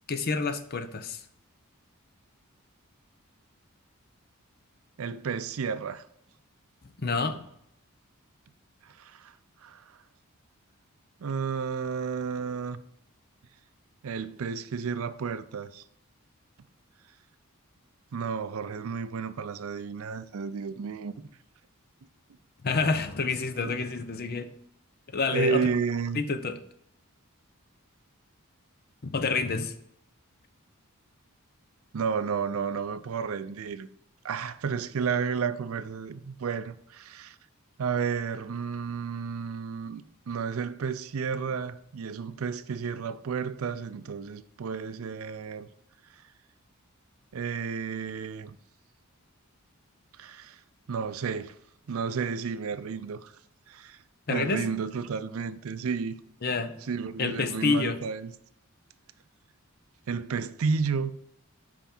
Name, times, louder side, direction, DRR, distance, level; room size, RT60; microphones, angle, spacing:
voice 1, 0.1-1.2 7.0-7.5 22.6-24.5 25.1-25.6 26.1-26.6 29.0-29.7 54.3-54.6 56.4-56.7 57.2-58.0, left 4 dB, 45° left, 0.6 m, -28 dB
voice 2, 5.0-6.0 8.8-9.3 9.6-9.8 11.2-12.8 14.0-15.8 18.1-21.1 23.6-23.8 25.3-26.2 31.9-33.9 34.2-37.4 37.8-45.7 47.3-48.6 50.2-50.6 50.9-51.6 51.9-53.3 53.7-54.0 54.3-56.1 56.9-58.3 60.1-61.1, right 5 dB, 70° right, 0.4 m, -32 dB
5.7 x 5.0 x 4.3 m
head